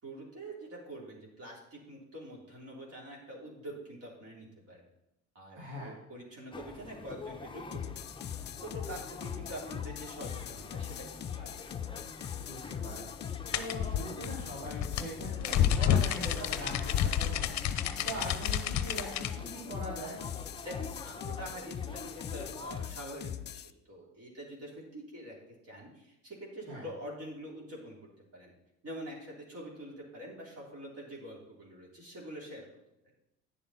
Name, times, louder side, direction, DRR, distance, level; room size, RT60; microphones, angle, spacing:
voice 1, 0.0-4.9 5.4-8.0 8.6-11.7 20.6-25.4 25.6-28.0 28.3-28.5 28.8-32.7, right 1 dB, 40° right, -4 dB, 3.5 m, -45 dB
voice 2, 5.5-5.9 12.5-13.1 13.5-17.6 18.0-20.2 26.7-26.8, right 1 dB, 85° right, -6 dB, 2.7 m, -41 dB
sound 1, 6.5-22.9, left 4 dB, 15° left, 0.9 m, -46 dB
sound 2, 7.7-23.7, left 9 dB, 30° left, 0.5 m, -41 dB
sound 3, 13.5-19.3, left 10 dB, 50° left, 0.8 m, -29 dB
10.0 x 7.0 x 4.3 m, 0.87 s
hypercardioid pair, 75°, 37 cm